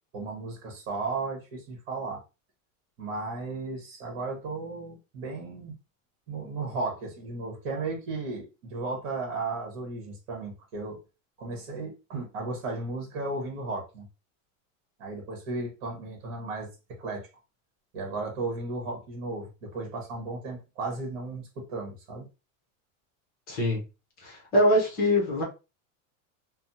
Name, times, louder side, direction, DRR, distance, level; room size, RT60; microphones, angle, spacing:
voice 1, 0.1-2.2 3.0-5.7 6.3-11.0 11.4-14.1 15.0-16.7 17.0-17.3 17.9-22.3, right 3 dB, 45° right, 1.1 m, -35 dB
voice 2, 23.5-23.8 24.2-25.4, equal, 25° left, 0.7 m, -23 dB
3.3 x 2.1 x 2.7 m
supercardioid pair, 175°, 41 cm